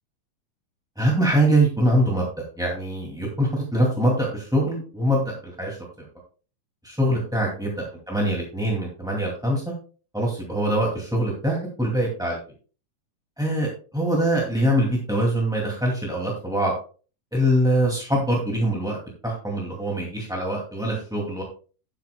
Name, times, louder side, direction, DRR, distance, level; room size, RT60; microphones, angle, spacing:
voice 1, 1.0-2.2 2.6-5.8 6.8-9.7 10.1-12.4 13.4-16.7 17.3-19.0 19.2-21.4, right 1 dB, ahead, -3 dB, 1.5 m, -23 dB
12.0 x 11.5 x 2.2 m, 0.37 s
omnidirectional pair, 3.8 m